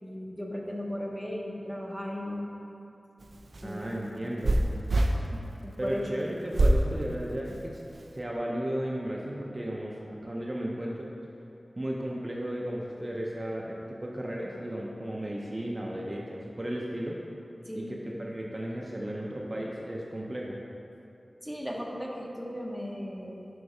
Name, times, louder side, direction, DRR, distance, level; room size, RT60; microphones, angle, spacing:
voice 1, 0.0-2.4 3.6-3.8 4.2-4.3 5.3-6.2 17.7-17.9 21.4-23.4, equal, ahead, -2 dB, 0.8 m, -36 dB
sound 1, 3.2-5.1 6.5-6.8 7.5-8.1, right 1 dB, 90° right, 0.4 m, -25 dB
voice 2, 3.6-4.6 5.8-7.8 8.1-11.1 11.8-17.2 17.7-20.6, right 1 dB, 35° right, -3 dB, 0.6 m, -34 dB
5.3 x 3.9 x 4.8 m, 2.8 s
wide cardioid pair, 65°, 0 cm